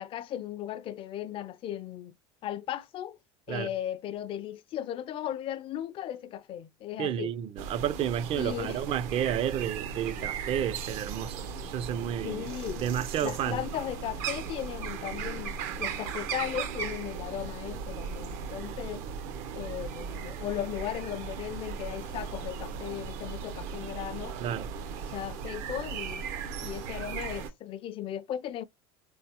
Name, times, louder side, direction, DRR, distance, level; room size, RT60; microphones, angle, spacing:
voice 1, 0.0-2.2 2.4-3.2 3.5-7.3 8.3-8.8 12.2-12.8 13.2-19.0 19.5-24.4 25.1-26.3 26.6-28.6, left 11 dB, 40° left, 0.4 m, -36 dB
voice 2, 7.0-11.4 11.7-12.5 12.8-13.6 24.4-24.7, right 10 dB, 45° right, 0.4 m, -31 dB
sound 1, 7.6-27.5, right 6 dB, 70° right, 0.7 m, -37 dB
3.8 x 3.4 x 2.8 m
supercardioid pair, 115°, 14 cm